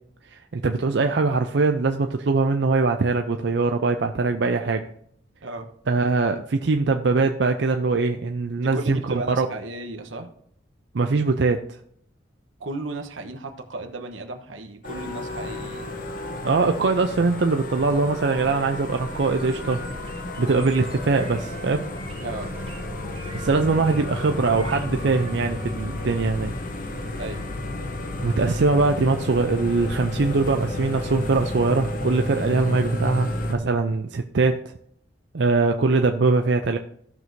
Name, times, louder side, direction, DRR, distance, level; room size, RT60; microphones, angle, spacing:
voice 1, 0.3-4.8 5.9-9.5 10.9-11.6 16.4-19.8 20.4-21.8 23.3-26.5 28.2-34.6 35.3-36.8, right 3 dB, 60° right, 5 dB, 0.5 m, -22 dB
voice 2, 8.6-10.3 12.6-15.9 22.2-22.5 27.2-27.5, right 2 dB, 90° right, 6 dB, 1.1 m, -34 dB
sound 1, 14.8-33.5, left 1 dB, 45° left, 0.9 m, -32 dB
sound 2, 19.4-25.3, right 2 dB, 30° right, 1.0 m, -44 dB
16.0 x 6.1 x 2.7 m, 0.68 s
head